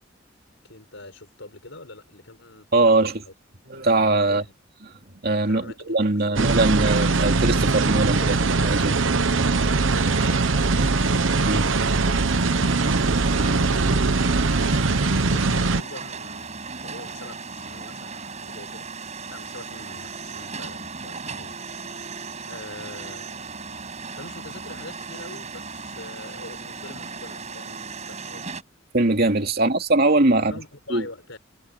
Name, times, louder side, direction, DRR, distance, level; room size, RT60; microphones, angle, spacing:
voice 1, 0.6-3.3 4.3-4.5 5.5-6.5 8.2-8.4 8.8-9.2 9.5-11.0 12.0-16.5 16.8-18.9 19.3-21.6 22.5-28.4 29.6-29.7 30.4-31.4, left 2 dB, 85° left, 5.4 m, -44 dB
voice 2, 2.7-3.2 3.7-4.4 5.2-8.2 8.6-8.9 11.4-11.7 28.9-30.5 30.9-31.0, right 2 dB, 55° right, 2.6 m, -21 dB
sound 1, 6.4-15.8, right 3 dB, 85° right, 1.0 m, -21 dB
sound 2, 9.4-28.6, right 4 dB, 35° right, 5.8 m, -37 dB
head